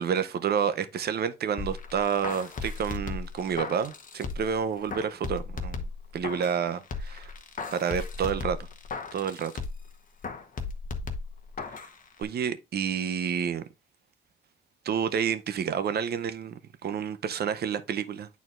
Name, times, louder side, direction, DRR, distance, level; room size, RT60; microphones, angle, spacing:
voice 1, 0.0-5.8 6.1-7.3 7.7-8.6 9.1-9.5 12.2-13.7 14.8-18.3, right 7 dB, 55° right, 0.7 m, -29 dB
sound 1, 1.6-4.6 4.9-6.6 6.9-9.9 10.2-11.9 12.2-12.3, left 4 dB, 45° left, 1.0 m, -36 dB
9.2 x 4.2 x 2.5 m
cardioid pair, 90°, 20 cm